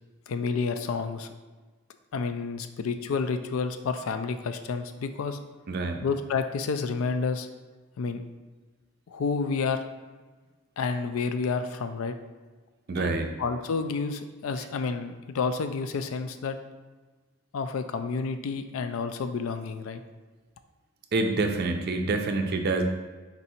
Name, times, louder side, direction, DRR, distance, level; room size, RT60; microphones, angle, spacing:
voice 1, 0.3-1.3 2.1-5.4 6.0-7.5 8.0-8.2 9.1-9.8 10.8-12.2 13.0-16.6 17.5-20.0, left 4 dB, 70° left, 9 dB, 0.3 m, -30 dB
voice 2, 5.7-6.1 12.9-13.3 21.1-22.8, right 3 dB, 45° right, 5 dB, 0.4 m, -27 dB
4.1 x 2.7 x 4.2 m, 1.3 s
head